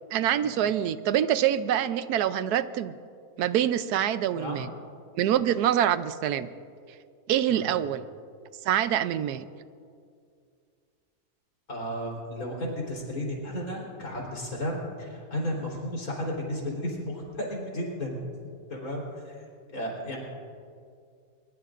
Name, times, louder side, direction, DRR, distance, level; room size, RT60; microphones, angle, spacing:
voice 1, 0.1-2.9 3.4-4.7 5.2-6.5 7.3-8.0 8.7-9.5, right 10 dB, 85° right, 13 dB, 1.2 m, -25 dB
voice 2, 11.7-18.1 18.7-19.4 19.7-20.3, equal, 65° left, -2 dB, 4.3 m, -33 dB
23.0 x 22.0 x 2.5 m, 2.3 s
omnidirectional pair, 1.6 m